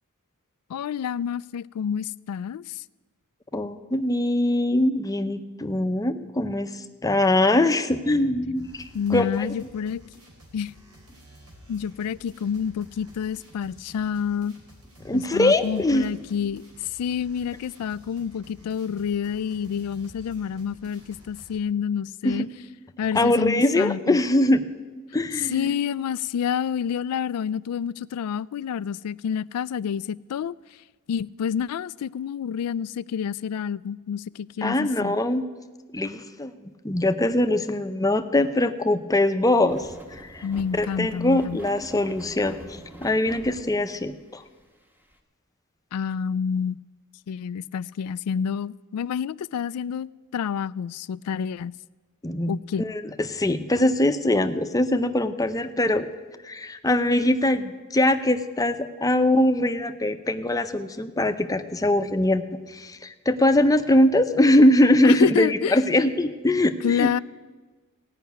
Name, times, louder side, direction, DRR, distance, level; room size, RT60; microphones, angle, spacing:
voice 1, 0.7-2.8 8.9-10.0 10.5-10.7 11.7-14.5 15.1-22.5 23.0-24.2 25.5-30.5 31.1-35.2 40.4-41.6 45.9-46.8 47.3-51.7 52.5-52.8 65.0-65.8 66.8-67.2, left 7 dB, 85° left, 20 dB, 0.3 m, -28 dB
voice 2, 3.5-9.5 15.0-16.0 22.2-22.4 23.1-24.6 25.1-25.7 34.6-35.4 35.9-40.4 40.8-42.6 43.0-44.4 52.2-56.1 56.4-62.4 62.7-67.1, left 1 dB, 15° left, 9 dB, 0.6 m, -22 dB
sound 1, 8.6-21.6, equal, 80° right, 3.5 m, -51 dB
sound 2, 39.7-44.3 44.6-44.7 45.1-45.2, right 1 dB, 10° right, 1.0 m, -44 dB
17.0 x 5.8 x 9.3 m, 1.3 s
head